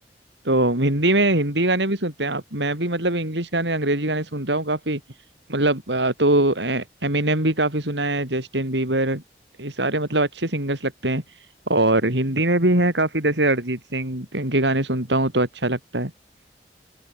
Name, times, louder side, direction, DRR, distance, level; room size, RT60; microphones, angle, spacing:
voice 1, 0.4-5.0 5.5-9.2 9.6-11.2 11.7-16.1, right 1 dB, 85° right, 5.9 m, -22 dB
open air
head